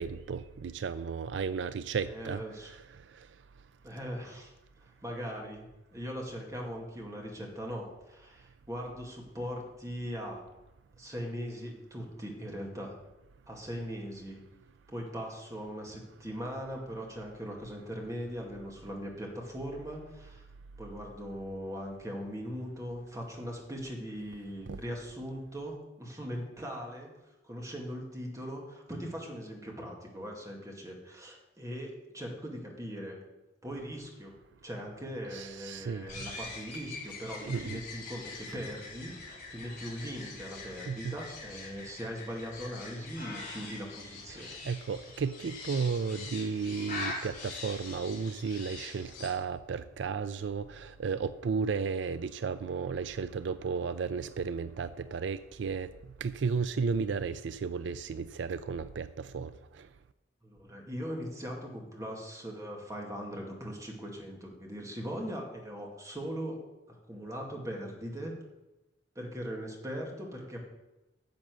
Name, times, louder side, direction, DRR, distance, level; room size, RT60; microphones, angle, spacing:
voice 1, 0.0-3.4 24.7-24.8 35.3-36.3 37.4-37.8 40.9-41.1 44.3-59.9, right 5 dB, 80° right, 0.4 m, -34 dB
voice 2, 2.1-2.7 3.8-4.5 4.8-5.7 5.9-10.4 11.0-13.0 13.5-14.4 14.9-20.5 20.8-27.1 27.4-33.2 33.6-34.4 34.6-44.5 60.4-68.3 69.2-70.6, equal, 20° right, 2.2 m, -40 dB
sound 1, 36.1-49.3, left 3 dB, 45° left, 4.7 m, -43 dB
10.5 x 7.3 x 6.3 m
head